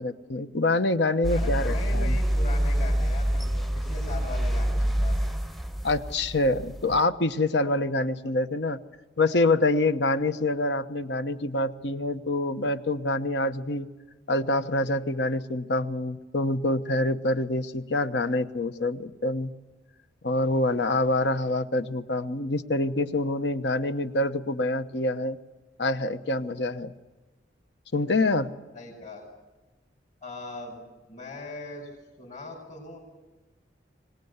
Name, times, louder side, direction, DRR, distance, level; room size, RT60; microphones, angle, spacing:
voice 1, 0.0-2.2 5.8-8.8 9.2-13.9 14.3-19.5 20.2-25.4 25.8-26.9 27.9-28.5, left 2 dB, 75° left, 11 dB, 1.1 m, -26 dB
sound 1, 1.2-7.0, equal, ahead, 0.7 m, -26 dB
voice 2, 1.3-5.4 28.7-29.2 30.2-30.8 31.1-31.9 32.2-33.0, left 2 dB, 45° left, -5 dB, 5.3 m, -39 dB
24.5 x 19.5 x 8.1 m, 1.1 s
head